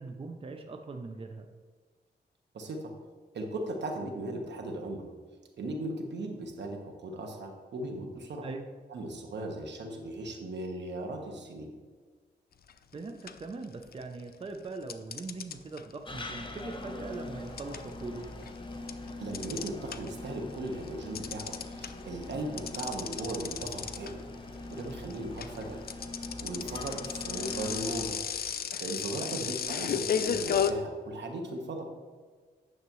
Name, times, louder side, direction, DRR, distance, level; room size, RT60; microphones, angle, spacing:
voice 1, 0.0-1.5 8.4-8.7 12.9-18.3 29.2-29.5, right 3 dB, 30° right, 5 dB, 0.6 m, -41 dB
voice 2, 2.5-2.9 3.3-5.1 5.6-8.5 8.9-11.7 19.2-24.2 24.7-25.8 26.4-28.2 28.5-31.9, right 1 dB, 75° right, 3 dB, 1.2 m, -37 dB
sound 1, 12.7-12.9 13.3-14.2 14.9-20.3 20.6-30.7, left 8 dB, 55° left, 0.4 m, -34 dB
sound 2, 16.0-28.1, left 2 dB, 25° left, 0.9 m, -43 dB
9.5 x 6.6 x 3.1 m, 1.5 s
wide cardioid pair, 95°, 18 cm